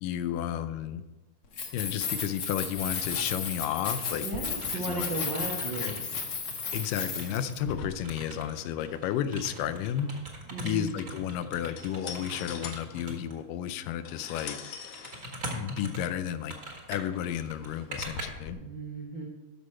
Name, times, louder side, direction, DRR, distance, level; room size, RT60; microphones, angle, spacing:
voice 1, 0.0-1.0 1.7-5.1 5.6-5.9 6.7-10.1 10.6-14.6 15.5-16.5 16.9-18.6, left 10 dB, 85° left, 11 dB, 2.3 m, -32 dB
Keys jangling, 1.4-7.6, left 5 dB, 50° left, 1.7 m, -34 dB
sound 1, 2.9-3.4 3.6-7.5 7.9-13.4 14.2-14.4 14.9-18.2, right 1 dB, 35° right, 1.5 m, -42 dB
voice 2, 4.2-6.0 10.5-10.9 18.6-19.3, right 2 dB, 75° right, -2 dB, 1.0 m, -35 dB
sound 2, 7.6-18.5, left 5 dB, 70° left, 1.9 m, -45 dB
12.5 x 6.3 x 4.3 m, 1.1 s
omnidirectional pair, 3.8 m